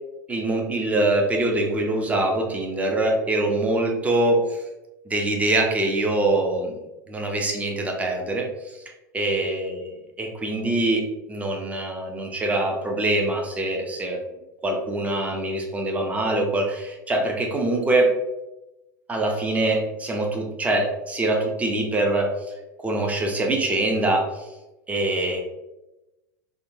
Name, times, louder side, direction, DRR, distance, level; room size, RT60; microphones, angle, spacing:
voice 1, 0.3-4.6 5.1-6.8 7.1-8.8 9.1-9.9 10.2-14.2 14.6-18.1 19.1-22.3 22.8-24.5 24.9-25.4, right 2 dB, 15° right, 1 dB, 0.6 m, -24 dB
3.5 x 2.3 x 2.6 m, 1.0 s
figure-of-eight pair, 85°, 10 cm